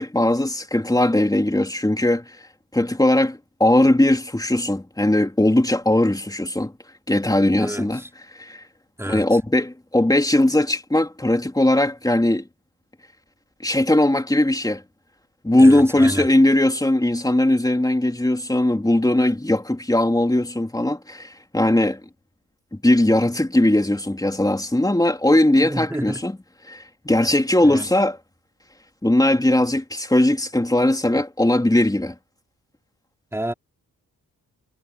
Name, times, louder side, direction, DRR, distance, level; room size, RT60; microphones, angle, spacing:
voice 1, 0.0-2.3 2.7-6.7 7.1-8.0 8.4-8.6 9.1-12.4 13.6-14.8 15.4-22.0 22.7-26.3 26.7-28.2 29.0-32.1, left 1 dB, 10° left, 3.5 m, -19 dB
voice 2, 7.6-8.1 9.0-9.4 15.6-16.3 25.6-26.2 27.6-27.9 33.3-33.5, right 1 dB, 5° right, 3.7 m, -30 dB
cardioid pair, 80°, 35 cm